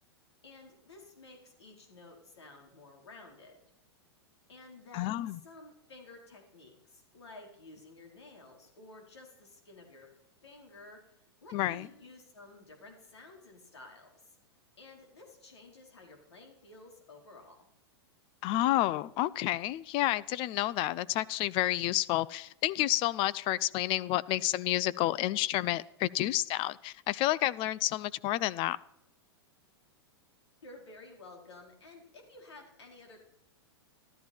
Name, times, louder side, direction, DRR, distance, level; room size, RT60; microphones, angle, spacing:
voice 1, 0.4-3.6 4.5-10.1 10.4-14.4 14.8-17.6 30.6-33.2, left 2 dB, 85° left, 1 dB, 4.3 m, -53 dB
voice 2, 4.9-5.4 11.5-11.9 18.4-28.8, left 15 dB, 40° left, 19 dB, 0.5 m, -30 dB
13.5 x 13.0 x 4.5 m, 0.77 s
hypercardioid pair, 110°, 14 cm